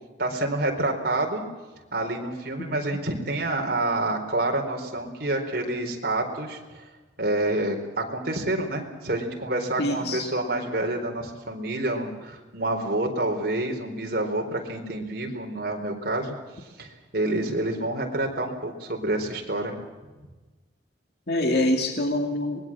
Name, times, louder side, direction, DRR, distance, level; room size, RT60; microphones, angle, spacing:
voice 1, 0.2-1.4 1.9-6.6 7.2-16.3 16.8-19.8, right 2 dB, 55° right, 2 dB, 4.3 m, -28 dB
voice 2, 9.8-10.3 21.3-22.6, left 1 dB, 60° left, 4 dB, 2.6 m, -25 dB
24.5 x 21.0 x 7.5 m, 1.2 s
head